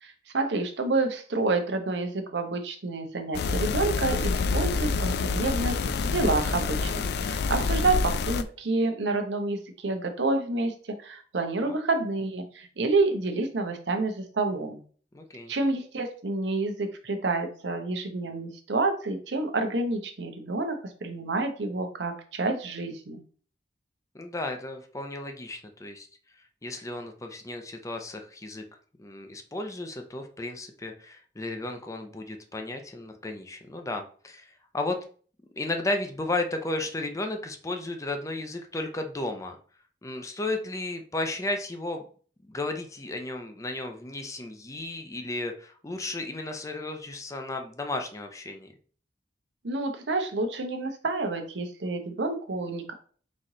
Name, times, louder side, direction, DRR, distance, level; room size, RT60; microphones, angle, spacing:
voice 1, 0.0-5.8 6.0-10.7 11.0-14.8 15.5-23.2 49.6-52.9, right 3 dB, 85° right, 5 dB, 0.8 m, -28 dB
sound 1, 3.3-8.4, left 4 dB, 65° left, 0.4 m, -27 dB
voice 2, 15.1-15.5 24.1-26.1 26.6-28.6 29.0-35.0 35.6-39.6 40.0-42.0 42.5-48.7, left 2 dB, 20° left, 5 dB, 0.6 m, -34 dB
4.2 x 3.1 x 3.7 m, 0.43 s
head